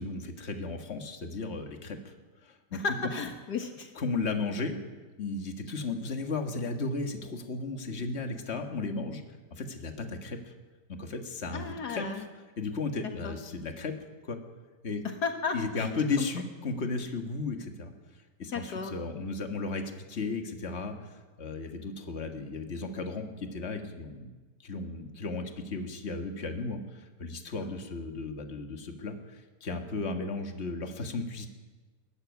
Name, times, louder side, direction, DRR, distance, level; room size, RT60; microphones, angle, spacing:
voice 1, 0.0-2.1 2.4-2.8 4.0-4.8 5.2-9.2 9.5-10.5 10.9-12.3 12.6-13.9 14.2-14.4 14.8-15.0 15.5-17.9 18.4-21.1 21.4-24.3 24.6-31.5, left 3 dB, 40° left, 5 dB, 2.0 m, -35 dB
voice 2, 2.7-3.9 11.5-12.3 13.2-13.3 15.0-15.9 16.2-16.3 18.5-18.9 27.6-27.7, left 5 dB, 70° left, 5 dB, 2.0 m, -34 dB
22.0 x 12.5 x 9.5 m, 1.3 s
omnidirectional pair, 1.8 m